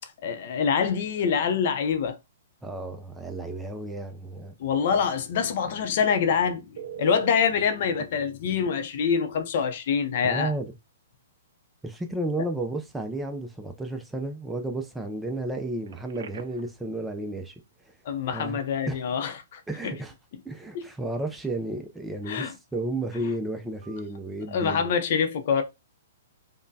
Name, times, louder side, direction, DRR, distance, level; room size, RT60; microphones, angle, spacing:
voice 1, 0.2-2.2 4.6-10.5 18.1-20.0 20.7-20.9 22.3-22.5 24.5-25.6, left 6 dB, 55° left, 0.6 m, -25 dB
voice 2, 2.6-4.5 10.2-10.7 11.8-17.5 18.3-18.6 18.9-19.0 19.7-20.1 20.5-24.9, right 2 dB, 5° right, 0.4 m, -32 dB
Telephone, 6.8-7.4 8.0-8.1 9.9-10.0 10.4-10.6 15.9-16.7 23.8-24.0, right 9 dB, 70° right, 0.4 m, -40 dB
5.0 x 2.1 x 2.7 m
hypercardioid pair, 140°, 0 cm